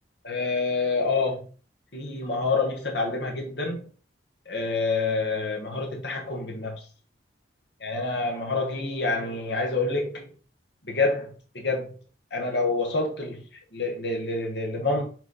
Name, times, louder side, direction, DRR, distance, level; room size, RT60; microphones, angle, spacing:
voice 1, 0.2-1.5 1.9-3.8 4.5-6.8 7.8-10.3 10.9-11.3 11.5-12.0 12.3-13.4 13.7-15.1, left 3 dB, 65° left, 1.4 m, -27 dB
6.1 x 3.3 x 5.4 m
head